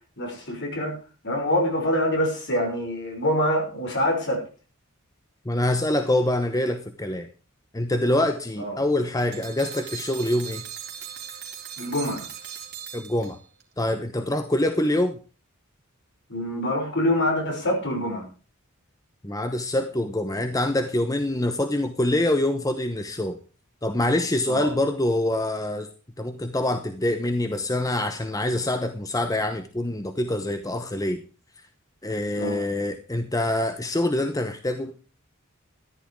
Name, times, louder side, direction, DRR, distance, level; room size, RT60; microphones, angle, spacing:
voice 1, 0.2-1.0 1.2-4.4 8.6-8.8 11.8-12.3 16.3-18.3 24.5-24.7 32.4-32.6, left 1 dB, 55° left, 6.1 m, -25 dB
voice 2, 5.4-7.3 7.7-10.6 12.9-13.4 13.8-15.2 19.2-23.4 23.8-25.9 26.2-31.2 32.0-34.9, left 1 dB, 15° left, 0.9 m, -25 dB
sound 1, 9.3-13.6, right 9 dB, 50° right, 3.6 m, -39 dB
14.0 x 11.0 x 4.8 m
head